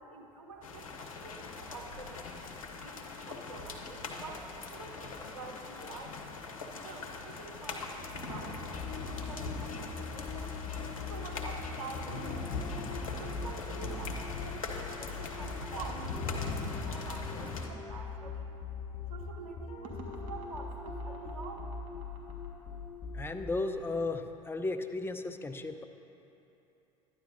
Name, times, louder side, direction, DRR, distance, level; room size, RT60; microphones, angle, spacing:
voice 1, 0.0-2.4 2.8-6.2 6.7-10.5 10.9-12.7 13.2-16.6 16.8-18.5 19.1-21.7, right 3 dB, 85° right, 1 dB, 0.7 m, -47 dB
sound 1, 0.6-17.7, left 4 dB, 85° left, 0.7 m, -41 dB
sound 2, 4.6-6.0 8.2-16.8 19.8-22.5, right 3 dB, 50° right, 1.5 m, -53 dB
sound 3, 8.7-23.9, left 4 dB, 35° left, 0.8 m, -42 dB
voice 2, 23.1-25.8, left 3 dB, 15° left, 7 dB, 0.5 m, -35 dB
12.5 x 9.7 x 2.6 m, 2.9 s
hypercardioid pair, 70°, 17 cm